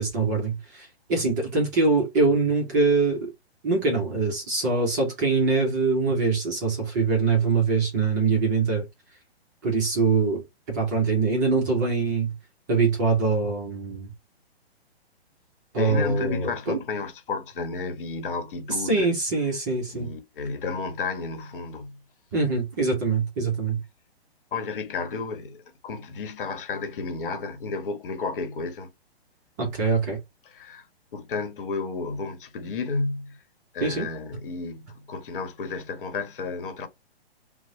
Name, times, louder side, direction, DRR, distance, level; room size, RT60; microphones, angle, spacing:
voice 1, 0.0-3.3 3.6-8.9 9.6-12.3 12.7-14.1 15.7-16.8 18.7-20.1 22.3-23.8 29.6-30.2 33.8-34.1, right 4 dB, 20° right, 0.5 m, -24 dB
voice 2, 15.8-19.1 19.9-22.0 24.5-28.9 30.5-30.9 31.1-33.4 33.7-36.9, left 3 dB, 55° left, 1.0 m, -32 dB
2.9 x 2.0 x 2.7 m
hypercardioid pair, 150°, 32 cm